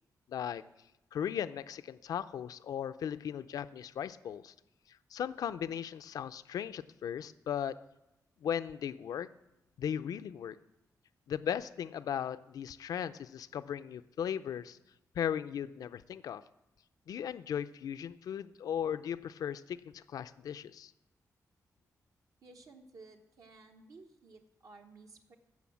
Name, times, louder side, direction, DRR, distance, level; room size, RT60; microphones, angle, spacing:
voice 1, 0.3-0.6 1.1-4.5 5.1-7.8 8.4-9.3 9.8-10.6 11.3-14.8 15.2-16.4 17.1-20.9, left 9 dB, 85° left, 13 dB, 0.4 m, -37 dB
voice 2, 22.4-25.4, right 3 dB, 65° right, 3 dB, 1.1 m, -55 dB
15.5 x 6.3 x 7.3 m, 0.92 s
wide cardioid pair, 160°, 6 cm